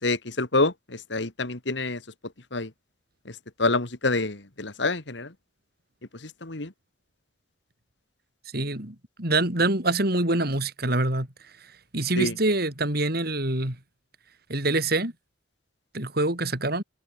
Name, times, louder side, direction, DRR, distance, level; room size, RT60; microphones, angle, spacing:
voice 1, 0.0-2.0 2.5-2.7 3.3-5.3 6.2-6.7 12.2-12.3, left 3 dB, 65° left, 2.1 m, -27 dB
voice 2, 8.5-11.3 11.9-13.8 14.5-15.1 15.9-16.8, right 2 dB, 55° right, 4.3 m, -25 dB
head